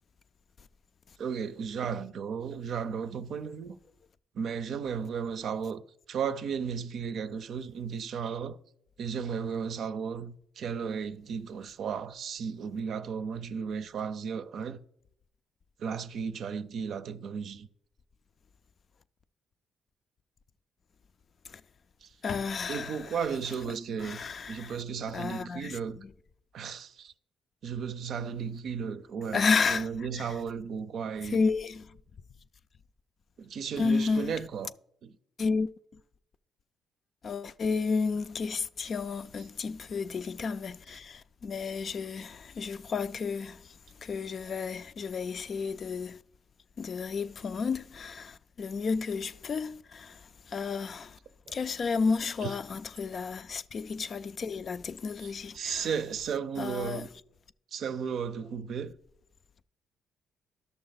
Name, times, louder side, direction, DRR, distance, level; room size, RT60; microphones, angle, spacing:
voice 1, 1.2-3.8 4.3-5.8 6.1-8.6 9.0-14.8 15.8-17.7 22.0-22.1 22.7-26.0 26.5-27.1 27.6-31.4 33.4-34.7 35.0-35.1 40.9-41.0 51.5-51.6 52.4-52.5 55.2-57.1 57.7-59.0, right 6 dB, 65° right, 0.5 m, -35 dB
voice 2, 22.2-23.0 24.0-24.8 25.1-25.8 29.3-29.9 30.1-30.2 31.3-31.8 33.8-34.3 35.4-35.7 37.2-43.6 44.0-46.2 46.8-50.2 50.5-51.1 51.5-55.9 56.6-57.1, left 5 dB, 50° left, 0.4 m, -31 dB
11.0 x 6.6 x 4.0 m
cardioid pair, 90°, 0 cm